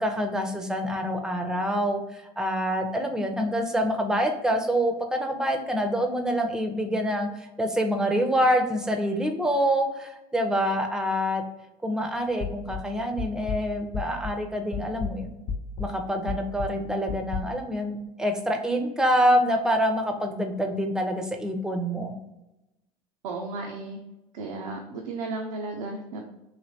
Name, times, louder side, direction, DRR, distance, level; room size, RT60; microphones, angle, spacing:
voice 1, 0.0-11.4 11.8-15.4 15.8-22.2, equal, 5° right, 4 dB, 0.5 m, -26 dB
sound 1, 12.4-14.5 14.7-17.4, left 5 dB, 50° left, 0.4 m, -33 dB
voice 2, 23.2-24.0 24.3-26.2, right 3 dB, 80° right, 0 dB, 0.5 m, -34 dB
3.2 x 2.6 x 2.7 m, 0.95 s
hypercardioid pair, 75°, 18 cm